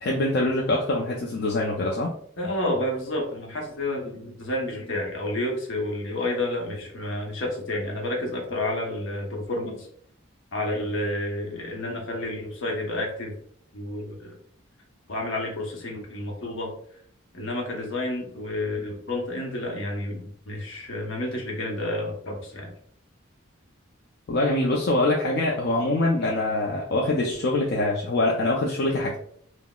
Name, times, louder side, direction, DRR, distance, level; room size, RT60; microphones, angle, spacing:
voice 1, 0.0-2.1 24.3-29.2, left 2 dB, 50° left, -1 dB, 0.4 m, -24 dB
voice 2, 2.4-9.9 10.5-13.3 13.7-14.3 15.1-16.7 17.3-22.7, left 1 dB, 70° left, 0 dB, 0.8 m, -30 dB
3.8 x 2.0 x 2.2 m, 0.62 s
head